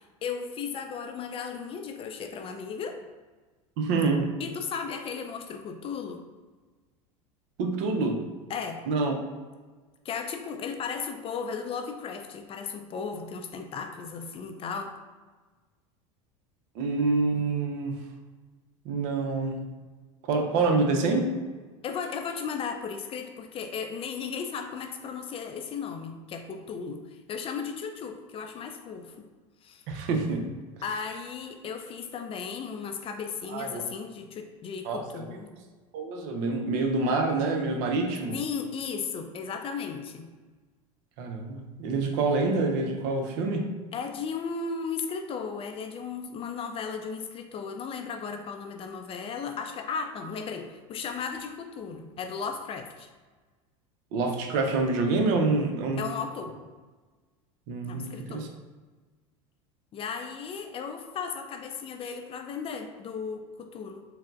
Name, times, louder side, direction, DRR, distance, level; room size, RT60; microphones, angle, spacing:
voice 1, 0.0-3.0 4.4-6.2 8.5-8.8 10.1-14.9 21.8-29.3 29.6-29.8 30.8-35.5 38.3-40.3 43.9-53.1 56.0-56.6 57.9-58.5 59.9-64.0, left 6 dB, 35° left, 5 dB, 0.4 m, -35 dB
voice 2, 3.8-4.3 7.6-8.2 8.9-9.1 16.8-18.0 18.8-19.6 20.3-21.3 29.9-30.4 33.5-33.8 34.8-35.2 35.9-38.3 41.2-43.7 54.1-56.0 57.7-58.5, right 3 dB, 60° right, 3 dB, 0.6 m, -26 dB
4.2 x 2.0 x 2.4 m, 1.3 s
hypercardioid pair, 90°, 17 cm